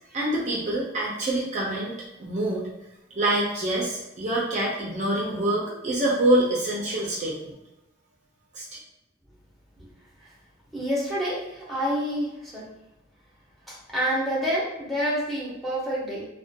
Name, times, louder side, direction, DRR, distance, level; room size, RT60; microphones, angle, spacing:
voice 1, 0.1-2.7 3.2-7.6 8.5-8.8, right 1 dB, 40° right, -4 dB, 0.5 m, -26 dB
voice 2, 10.7-12.7 13.7-16.3, equal, ahead, -7 dB, 0.7 m, -28 dB
2.4 x 2.2 x 2.7 m, 0.91 s
head